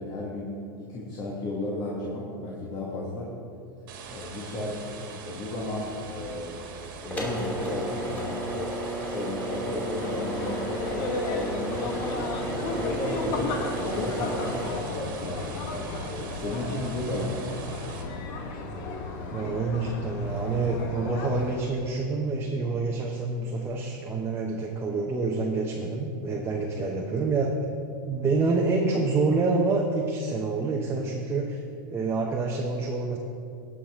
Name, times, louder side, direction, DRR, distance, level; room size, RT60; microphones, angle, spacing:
voice 1, 0.0-3.4 4.1-6.6 7.0-8.7 9.0-12.4 12.7-15.6 16.2-17.6 26.5-27.0, left 2 dB, 35° left, -5 dB, 1.7 m, -34 dB
sound 1, 3.9-18.0, right 5 dB, 70° right, 1.7 m, -43 dB
sound 2, 5.6-16.3, right 1 dB, 15° left, 2.4 m, -34 dB
sound 3, 9.9-21.7, left 3 dB, 55° left, 1.2 m, -34 dB
voice 2, 19.3-27.5 28.0-31.6 31.9-33.2, right 3 dB, 20° right, 0 dB, 0.9 m, -27 dB
17.5 x 6.2 x 3.6 m, 2.6 s
hypercardioid pair, 110°, 12 cm